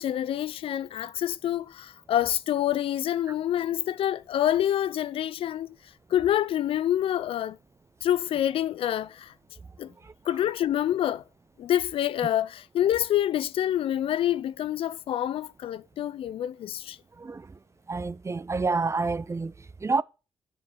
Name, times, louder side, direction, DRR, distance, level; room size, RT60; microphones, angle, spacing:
voice 1, 0.0-5.7 6.1-7.6 8.0-9.3 9.8-9.9 10.3-11.2 11.6-17.0, left 11 dB, 70° left, 0.4 m, -27 dB
voice 2, 17.2-17.6 17.9-20.0, right 4 dB, 30° right, 0.5 m, -29 dB
7.4 x 5.2 x 6.1 m
hypercardioid pair, 40°, 10 cm